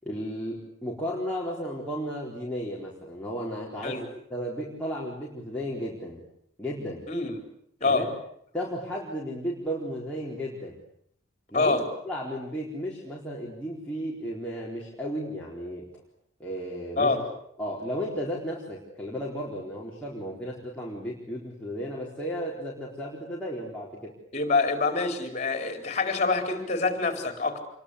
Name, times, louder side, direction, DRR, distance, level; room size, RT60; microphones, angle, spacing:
voice 1, 0.0-4.0 4.3-6.2 6.6-7.0 7.8-8.1 8.5-10.7 11.5-11.8 12.0-15.9 16.4-17.2 17.6-24.1, equal, 5° left, -5 dB, 4.3 m, -34 dB
voice 2, 24.3-27.6, left 3 dB, 35° left, 6 dB, 4.5 m, -26 dB
27.5 x 22.5 x 8.4 m, 0.70 s
head